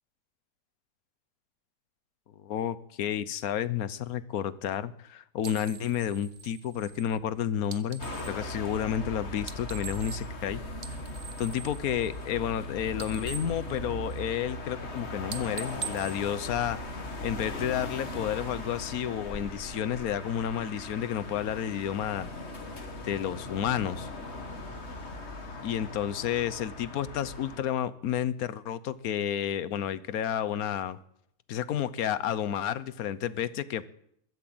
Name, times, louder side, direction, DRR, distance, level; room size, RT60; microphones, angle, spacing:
voice 1, 2.4-10.6 11.4-22.3 23.0-24.1 25.6-31.0 31.5-33.9, left 9 dB, 65° left, 16 dB, 1.1 m, -31 dB
sound 1, 5.4-8.4 9.3-10.5 10.7-12.6 12.9-14.4 14.8-15.0 15.3-17.1, right 7 dB, 40° right, 0.9 m, -43 dB
sound 2, 8.0-27.6, left 1 dB, 40° left, 1.9 m, -39 dB
22.0 x 7.7 x 7.8 m, 0.71 s
omnidirectional pair, 1.9 m